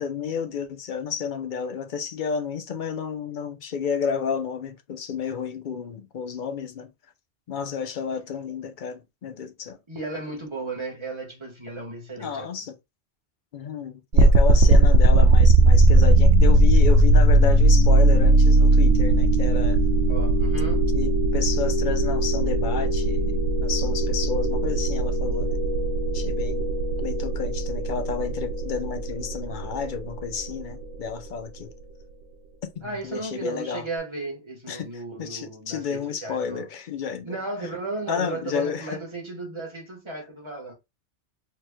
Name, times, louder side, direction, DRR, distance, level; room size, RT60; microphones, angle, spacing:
voice 1, 0.0-6.9 7.5-9.8 12.2-12.7 13.5-19.8 20.9-25.6 26.1-26.7 27.0-31.7 32.8-33.9 34.7-37.4 37.6-37.7 38.1-39.0, left 6 dB, 50° left, 0.7 m, -31 dB
voice 2, 9.9-12.5 20.1-20.9 32.8-36.6 37.2-40.7, right 2 dB, 25° right, 1.4 m, -35 dB
sound 1, 14.1-31.1, right 1 dB, 85° right, 1.1 m, -19 dB
4.5 x 3.2 x 2.2 m
omnidirectional pair, 1.2 m